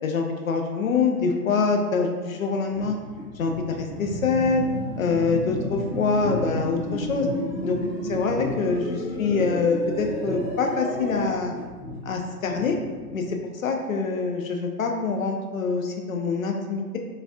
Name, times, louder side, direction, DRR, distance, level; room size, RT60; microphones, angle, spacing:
voice 1, 0.0-3.0 3.4-4.6 5.0-7.3 7.6-7.8 8.0-11.6 12.0-12.8 13.1-17.0, left 4 dB, 60° left, 3 dB, 0.5 m, -25 dB
sound 1, 2.7-13.6, equal, 5° right, 0.4 m, -38 dB
sound 2, 3.9-11.3, equal, 90° left, 1.3 m, -32 dB
3.8 x 2.4 x 2.6 m, 1.4 s
figure-of-eight pair, 125°, 47 cm